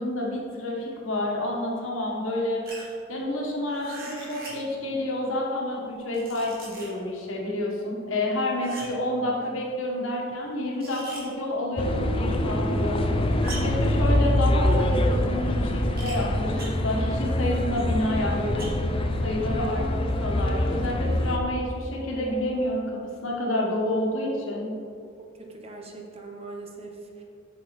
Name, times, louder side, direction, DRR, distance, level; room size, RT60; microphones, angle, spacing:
voice 1, 0.0-2.6 3.1-13.1 13.6-18.7 19.2-24.7, left 1 dB, 70° left, -2 dB, 1.5 m, -29 dB
sound 1, 2.6-2.9 3.7-4.7 5.9-7.0 8.6-9.1 10.8-11.3 13.4-13.8 16.0-16.2 16.6-16.9 18.6-19.0, right 2 dB, 50° right, 2.0 m, -40 dB
sound 2, 11.8-21.4, left 1 dB, 25° left, 0.5 m, -25 dB
voice 2, 25.2-27.2, right 3 dB, 30° right, 1 dB, 0.9 m, -41 dB
7.5 x 6.4 x 4.2 m, 2.4 s
head